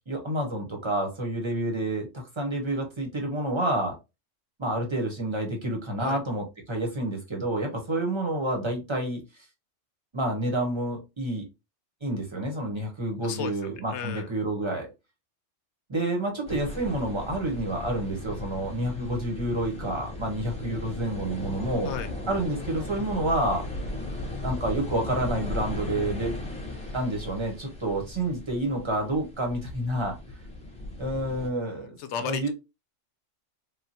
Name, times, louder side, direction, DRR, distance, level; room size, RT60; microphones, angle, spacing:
voice 1, 0.1-4.0 4.6-9.2 10.1-11.5 12.0-14.9 15.9-21.9 22.3-23.7 24.4-26.4 26.9-30.2 31.0-32.5, right 1 dB, 25° right, 1.0 m, -29 dB
voice 2, 13.2-13.5 13.9-14.3 21.8-22.1 32.0-32.5, left 8 dB, 70° left, 0.8 m, -33 dB
sound 1, 16.5-31.5, left 1 dB, 5° left, 0.7 m, -36 dB
3.6 x 2.2 x 2.7 m
omnidirectional pair, 1.3 m